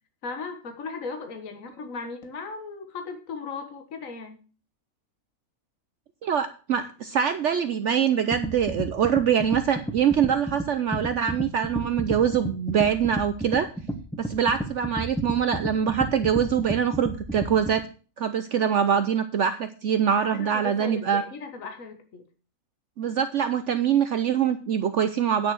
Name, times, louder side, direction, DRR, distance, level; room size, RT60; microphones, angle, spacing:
voice 1, 0.2-4.4 20.2-22.2, left 4 dB, 65° left, 5 dB, 1.8 m, -37 dB
voice 2, 6.2-13.7 14.2-17.9 18.2-21.2 23.0-25.5, right 8 dB, 60° right, 9 dB, 0.9 m, -24 dB
sound 1, 8.3-17.8, equal, 5° left, 1.0 m, -32 dB
9.6 x 6.7 x 6.4 m, 0.37 s
omnidirectional pair, 1.5 m